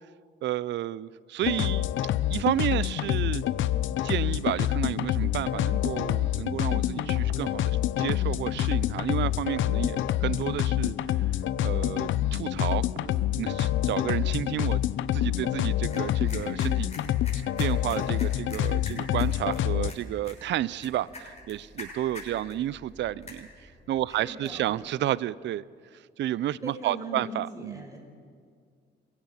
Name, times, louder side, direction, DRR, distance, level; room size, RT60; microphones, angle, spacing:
voice 1, 0.4-1.9 2.3-3.4 4.0-11.2 11.6-12.9 13.4-14.8 15.1-17.0 17.6-25.6 25.9-27.8, right 13 dB, 65° right, 21 dB, 0.5 m, -31 dB
sound 1, 1.4-19.9, left 13 dB, 75° left, 0.7 m, -27 dB
sound 2, 5.0-14.1, right 5 dB, 85° right, 1.6 m, -49 dB
sound 3, 15.2-24.7, left 2 dB, 35° left, 6.2 m, -47 dB
voice 2, 24.1-24.8 26.6-28.0, right 1 dB, 15° right, 2 dB, 5.4 m, -40 dB
28.0 x 16.5 x 5.7 m, 2.1 s
cardioid pair, 90°, 20 cm